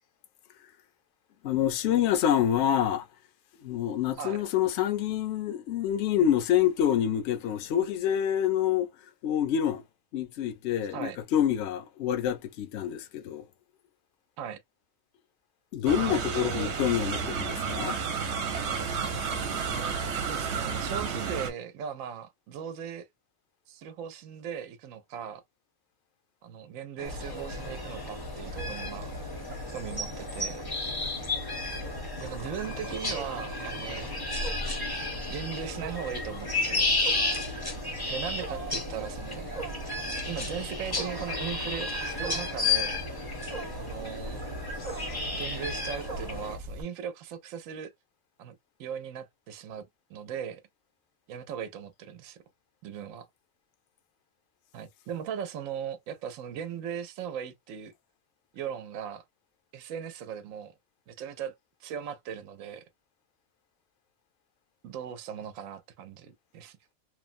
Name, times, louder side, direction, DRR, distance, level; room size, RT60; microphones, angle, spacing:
voice 1, 1.4-3.1 3.6-8.9 9.2-9.8 10.1-13.4 15.7-18.0, left 10 dB, 65° left, 0.9 m, -27 dB
sound 1, 15.9-21.5, right 5 dB, 60° right, 1.0 m, -31 dB
voice 2, 16.0-16.7 19.7-19.9 20.1-23.1 23.7-25.4 26.4-29.1 29.7-30.6 32.2-34.1 35.3-37.0 38.1-39.5 40.2-43.0 43.8-44.4 45.3-47.9 48.4-48.5 48.8-49.8 50.1-50.6 51.3-52.4 52.8-53.3 54.7-57.9 58.5-59.2 59.7-60.7 61.1-62.8 64.8-66.9, right 8 dB, 85° right, 1.0 m, -38 dB
sound 2, 27.0-46.6, left 3 dB, 25° left, 0.6 m, -33 dB
Wild animals, 27.0-46.8, right 1 dB, 45° right, 0.6 m, -40 dB
3.1 x 2.0 x 2.5 m
omnidirectional pair, 1.4 m